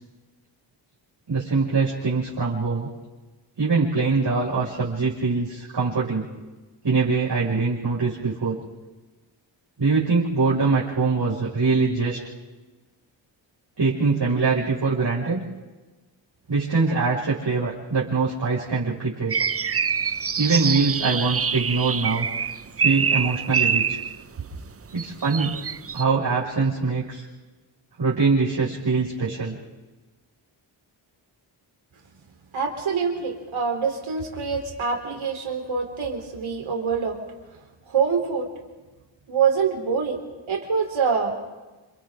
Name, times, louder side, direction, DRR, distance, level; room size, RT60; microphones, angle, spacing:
voice 1, 1.3-2.9 3.6-6.3 6.8-8.6 9.8-12.2 13.8-15.4 16.5-19.4 20.4-22.3 22.8-24.0 24.9-25.6 25.9-27.2 28.0-29.6, right 4 dB, 55° right, -7 dB, 6.0 m, -23 dB
sound 1, 19.3-24.2 25.0-26.0, right 6 dB, 30° right, 0.6 m, -25 dB
voice 2, 32.5-37.2 37.9-38.5 39.3-40.2 40.5-41.4, right 6 dB, 80° right, 2 dB, 4.1 m, -25 dB
28.5 x 27.0 x 3.9 m, 1.2 s
cardioid pair, 50°, 47 cm